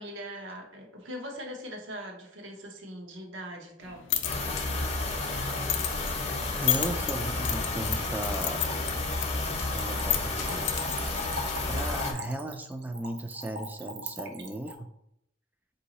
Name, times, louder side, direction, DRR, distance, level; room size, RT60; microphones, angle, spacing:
voice 1, 0.0-4.0 5.1-5.3 9.1-9.4, equal, 85° right, 1 dB, 1.0 m, -41 dB
sound 1, 3.8-11.9, left 11 dB, 75° left, 0.4 m, -34 dB
sound 2, 4.2-12.1, left 2 dB, 35° left, 0.7 m, -31 dB
voice 2, 6.6-8.6 9.7-10.7 11.7-14.9, right 1 dB, 10° right, 6 dB, 0.3 m, -36 dB
Splash splatter / Trickle dribble, 7.4-14.8, equal, 60° right, 0.6 m, -41 dB
3.8 x 2.7 x 4.1 m, 0.75 s
head